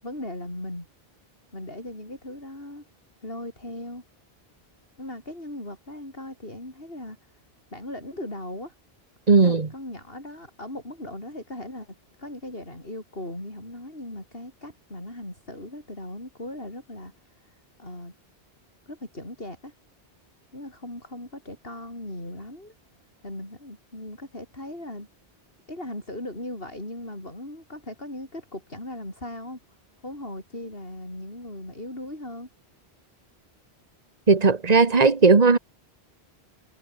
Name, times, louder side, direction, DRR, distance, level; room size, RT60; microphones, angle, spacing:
voice 1, 0.0-0.9 1.5-2.8 3.2-4.0 5.0-7.2 7.7-8.7 9.4-17.5 17.8-18.1 18.9-19.7 20.5-22.7 23.2-25.1 25.7-29.6 30.0-32.5, left 1 dB, 65° left, 8.1 m, -38 dB
voice 2, 9.3-9.7 34.3-35.6, right 4 dB, 40° right, 1.5 m, -17 dB
omnidirectional pair, 1.1 m